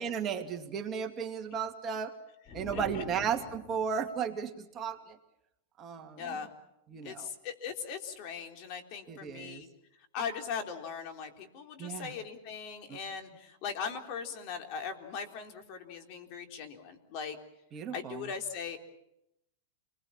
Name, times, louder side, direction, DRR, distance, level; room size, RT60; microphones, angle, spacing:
voice 1, 0.0-2.1 2.5-5.2 5.8-6.4 6.9-7.3 9.1-9.6 11.8-12.1 12.9-13.0 17.7-18.3, right 7 dB, 25° right, 4 dB, 2.4 m, -35 dB
sound 1, 2.5-4.1, left 4 dB, 30° left, 2.7 m, -45 dB
voice 2, 2.7-3.0 6.2-6.5 7.0-9.7 10.1-17.4 17.9-18.8, left 6 dB, 50° left, 5 dB, 3.7 m, -39 dB
28.5 x 21.0 x 7.3 m, 0.83 s
supercardioid pair, 135°, 0 cm